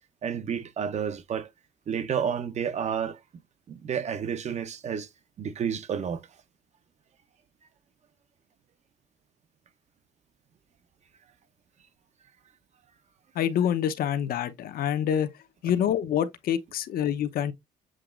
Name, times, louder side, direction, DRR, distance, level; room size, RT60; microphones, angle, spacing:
voice 1, 0.2-1.5 1.9-3.2 3.7-5.1 5.4-6.2, right 7 dB, 40° right, 0.7 m, -30 dB
voice 2, 13.3-15.3 15.6-17.5, left 9 dB, 60° left, 0.8 m, -26 dB
7.5 x 2.9 x 2.5 m
cardioid pair, 110°, 17 cm